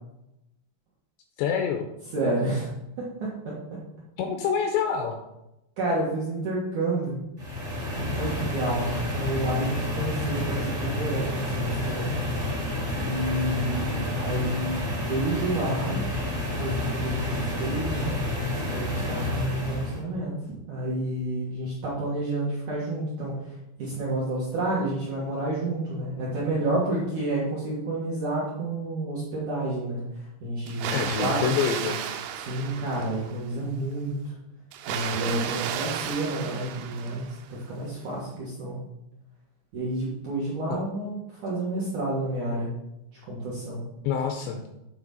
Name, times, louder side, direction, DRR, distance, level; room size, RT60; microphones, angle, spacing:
voice 1, 1.4-1.9 4.2-5.2 30.9-32.0 40.7-40.8 44.0-44.6, left 7 dB, 85° left, 4 dB, 2.6 m, -26 dB
voice 2, 2.1-2.7 3.0-3.5 5.8-7.2 8.0-12.2 12.9-14.7 15.0-16.0 16.6-18.1 18.7-20.3 20.7-23.3 23.8-30.0 30.4-31.4 32.4-34.1 34.9-38.8 39.7-42.7 43.3-43.8, right 2 dB, 60° right, -7 dB, 2.0 m, -29 dB
sound 1, 7.4-20.0, left 1 dB, 25° right, 1.1 m, -29 dB
Water, 30.7-33.5 34.7-37.5, right 9 dB, 85° right, 3.2 m, -33 dB
8.8 x 4.0 x 5.3 m, 0.90 s
omnidirectional pair, 5.6 m